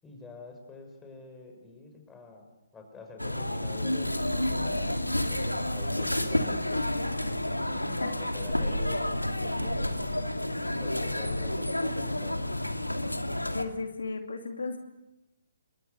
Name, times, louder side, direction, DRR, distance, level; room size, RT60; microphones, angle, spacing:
voice 1, 0.0-2.5 2.7-7.0 7.3-8.0 8.3-10.4 10.7-12.5, left 3 dB, 10° left, 3 dB, 6.1 m, -47 dB
sound 1, 3.2-13.6, left 1 dB, 85° left, 2.6 m, -30 dB
voice 2, 13.5-14.8, left 3 dB, 65° left, 4 dB, 2.7 m, -35 dB
29.5 x 23.5 x 6.8 m, 0.97 s
figure-of-eight pair, 135°, 0 cm